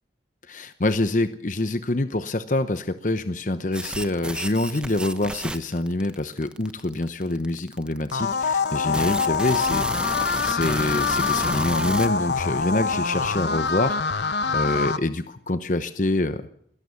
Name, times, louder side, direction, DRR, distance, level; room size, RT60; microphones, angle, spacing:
voice 1, 0.5-16.5, left 2 dB, 45° left, 11 dB, 0.9 m, -26 dB
sound 1, 3.7-12.1, right 1 dB, 5° right, 1.0 m, -32 dB
sound 2, 8.1-15.0, left 5 dB, 80° left, 1.0 m, -25 dB
22.0 x 17.5 x 7.0 m, 0.68 s
head